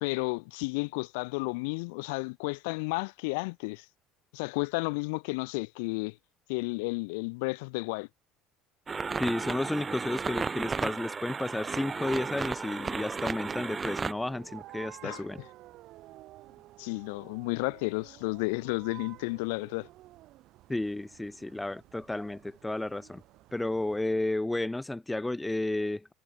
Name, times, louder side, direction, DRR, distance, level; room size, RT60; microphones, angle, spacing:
voice 1, 0.0-3.8 4.3-6.1 6.5-8.1 15.0-15.5 16.8-19.9, left 29 dB, 70° left, 0.9 m, -32 dB
sound 1, 8.9-14.1, right 5 dB, 30° right, 1.5 m, -34 dB
voice 2, 9.2-15.4 20.7-23.2 23.5-26.1, left 2 dB, 10° left, 1.4 m, -32 dB
sound 2, 11.6-24.0, right 16 dB, 60° right, 4.6 m, -53 dB
hypercardioid pair, 65°, 0 cm